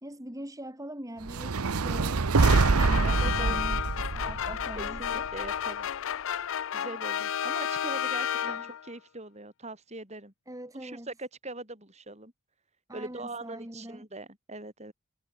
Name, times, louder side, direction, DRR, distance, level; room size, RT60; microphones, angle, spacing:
voice 1, 0.0-5.3 8.4-8.7 10.5-11.1 12.9-14.1, right 1 dB, 15° right, 3.8 m, -42 dB
sound 1, 1.2-5.5, right 4 dB, 90° right, 0.8 m, -25 dB
sound 2, 2.4-8.9, left 9 dB, 60° left, 0.4 m, -32 dB
voice 2, 3.0-3.6 4.8-5.9 6.7-10.3 10.7-12.3 12.9-14.9, right 2 dB, 30° right, 7.7 m, -41 dB
head